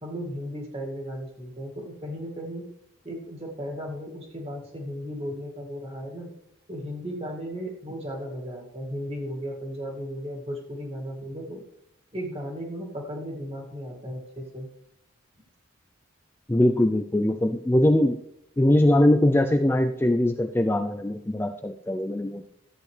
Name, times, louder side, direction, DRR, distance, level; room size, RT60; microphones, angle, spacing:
voice 1, 0.0-2.7 3.0-6.3 6.7-11.6 12.1-14.7, equal, 30° right, 0 dB, 2.1 m, -35 dB
voice 2, 16.5-18.2 18.6-22.5, left 1 dB, 10° left, 5 dB, 0.3 m, -21 dB
13.5 x 8.3 x 3.3 m, 0.77 s
head